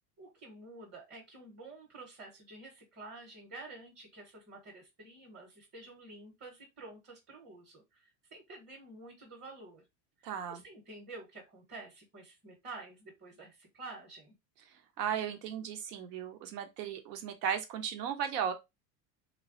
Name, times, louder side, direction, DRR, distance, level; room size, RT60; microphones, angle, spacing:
voice 1, 0.2-9.8 10.2-14.3, right 2 dB, 25° right, 0.9 m, -50 dB
voice 2, 10.2-10.6 15.0-18.5, right 8 dB, 80° right, 0.9 m, -35 dB
3.2 x 2.3 x 2.5 m
supercardioid pair, 130°, 47 cm